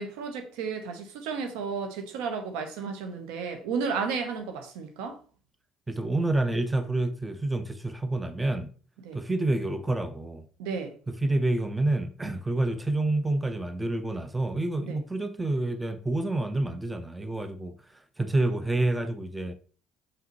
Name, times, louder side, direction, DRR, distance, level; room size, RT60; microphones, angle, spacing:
voice 1, 0.0-5.2 9.0-9.2 10.6-10.9 14.8-15.0, right 5 dB, 75° right, 1.0 m, -33 dB
voice 2, 5.9-8.7 9.1-10.4 11.1-17.7 18.2-19.5, right 2 dB, 15° right, 0.7 m, -28 dB
5.7 x 5.7 x 3.1 m
hypercardioid pair, 65°, 0 cm